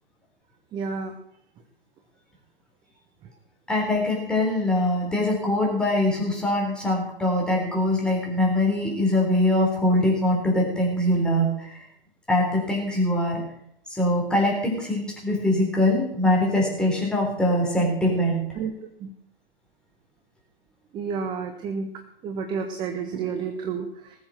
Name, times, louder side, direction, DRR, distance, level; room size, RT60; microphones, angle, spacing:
voice 1, 0.7-1.2 18.6-19.1 20.9-21.9 22.2-24.2, right 5 dB, 15° right, 7 dB, 0.9 m, -31 dB
voice 2, 3.7-11.8 12.3-13.4 13.9-18.4, left 1 dB, 5° left, -2 dB, 3.7 m, -23 dB
19.0 x 7.2 x 6.4 m, 0.74 s
figure-of-eight pair, 125°, 30 cm